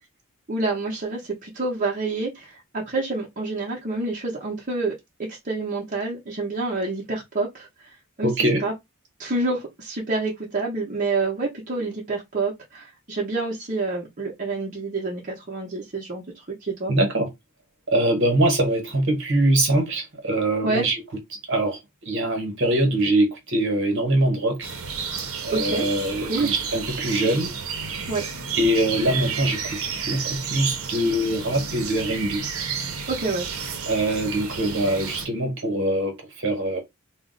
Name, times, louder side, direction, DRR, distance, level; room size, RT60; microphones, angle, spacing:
voice 1, 0.5-5.0 5.3-8.3 8.6-8.7 9.2-16.9 20.6-20.8 25.5-25.9 26.3-26.5 28.1-28.2 33.1-33.5, right 3 dB, 35° right, 0.7 m, -28 dB
voice 2, 8.2-8.6 16.9-17.3 17.9-21.0 21.3-24.7 25.4-27.5 28.6-32.4 33.9-36.8, right 1 dB, 60° right, 1.1 m, -23 dB
sound 1, 24.6-35.3, right 6 dB, 75° right, 0.7 m, -31 dB
2.4 x 2.0 x 3.7 m
head